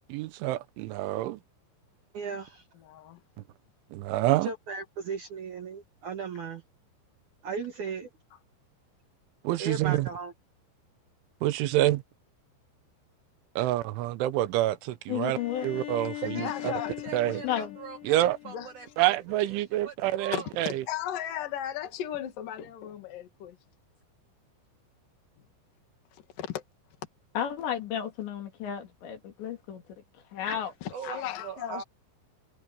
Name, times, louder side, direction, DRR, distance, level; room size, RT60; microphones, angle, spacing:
voice 1, 0.1-1.4 3.9-4.5 9.4-10.1 11.4-12.0 13.6-15.4 15.6-16.7 17.1-17.4 18.0-18.4 19.0-20.7, right 15 dB, 85° right, 3.4 m, -27 dB
voice 2, 2.1-2.6 4.4-6.6 7.4-8.1 9.6-10.3 16.2-16.5 17.1-17.5 17.8-18.2 18.4-18.5 19.0-19.2 19.8-20.4 30.9-31.2 31.4-31.8, right 5 dB, 60° right, 2.1 m, -37 dB
voice 3, 2.7-3.2 8.3-8.4 16.2-17.4 18.4-18.9 20.3-23.6 26.1-26.6 30.8-31.8, left 11 dB, 50° left, 3.6 m, -36 dB
voice 4, 15.1-15.7 17.4-17.8 27.4-29.8 30.3-30.7, left 9 dB, 70° left, 5.1 m, -32 dB
Bowed string instrument, 15.3-19.1, left 14 dB, 85° left, 6.1 m, -41 dB
omnidirectional pair, 5.4 m